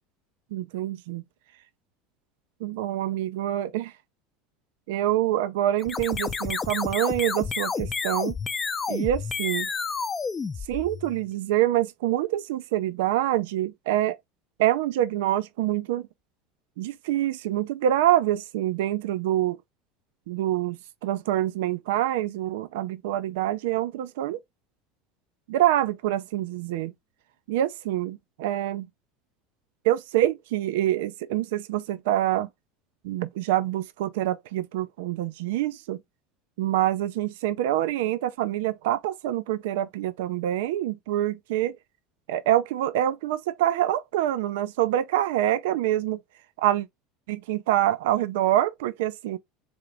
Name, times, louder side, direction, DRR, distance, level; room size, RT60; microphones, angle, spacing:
voice 1, 0.5-1.2 2.6-3.9 4.9-8.3 8.9-9.7 10.7-14.1 14.6-16.0 16.8-19.6 20.3-24.4 25.5-26.9 27.5-28.9 29.8-32.5 33.0-36.0 36.6-41.8 42.3-46.2 46.6-46.9 47.3-49.4, right 13 dB, 80° right, 0.5 m, -26 dB
sound 1, 5.8-11.3, left 5 dB, 20° left, 0.6 m, -30 dB
3.8 x 3.5 x 3.4 m
supercardioid pair, 120°, 0 cm